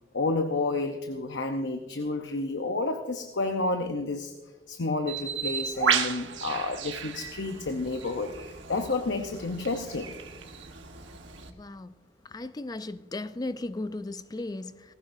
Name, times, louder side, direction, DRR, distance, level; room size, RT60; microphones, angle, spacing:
voice 1, 0.1-4.3 4.7-10.1, left 3 dB, 65° left, 0.8 m, -30 dB
Bird, 5.1-11.5, right 7 dB, 75° right, 1.3 m, -33 dB
voice 2, 11.5-14.9, left 2 dB, 20° left, 0.4 m, -36 dB
19.0 x 16.5 x 2.6 m
head